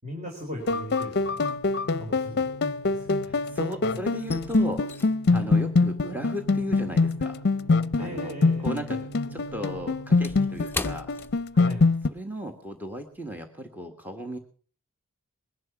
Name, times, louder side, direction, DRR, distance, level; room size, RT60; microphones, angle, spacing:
voice 1, 0.0-1.5 2.0-2.5 2.9-3.4 3.9-4.0 5.3-5.5 8.0-9.1 11.5-11.9, left 1 dB, 30° right, 1 dB, 4.0 m, -38 dB
sound 1, 0.6-12.1, left 3 dB, 50° left, 0.7 m, -24 dB
sound 2, 0.9-1.3 1.6-3.5 3.8-8.5 8.8-12.1 12.4-12.6 13.1-13.3, left 3 dB, 10° left, 0.7 m, -41 dB
sound 3, 1.6-10.9, right 2 dB, 80° right, 1.5 m, -45 dB
voice 2, 3.2-4.9 5.3-7.4 8.0-8.3 8.6-9.0 9.3-11.1 12.1-14.4, equal, 10° right, 4 dB, 1.5 m, -36 dB
21.5 x 11.0 x 6.0 m, 0.43 s
head